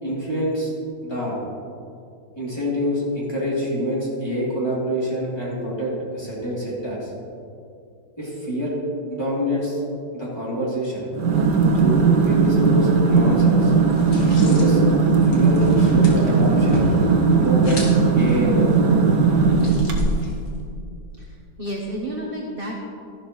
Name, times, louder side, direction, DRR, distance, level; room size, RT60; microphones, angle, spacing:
voice 1, 0.0-0.7 1.0-1.4 2.3-7.1 8.2-8.7 9.1-9.8 10.1-11.1 11.7-13.7 14.3-14.8 15.2-16.9 17.4-17.9 18.2-18.9, equal, 10° left, -7 dB, 3.0 m, -26 dB
sound 1, 11.1-20.4, right 4 dB, 60° right, 1.6 m, -17 dB
sound 2, 13.9-20.7, left 1 dB, 70° left, 2.6 m, -34 dB
voice 2, 21.2-22.8, right 1 dB, 40° right, -1 dB, 0.9 m, -31 dB
13.5 x 11.5 x 3.2 m, 2.4 s
omnidirectional pair, 2.1 m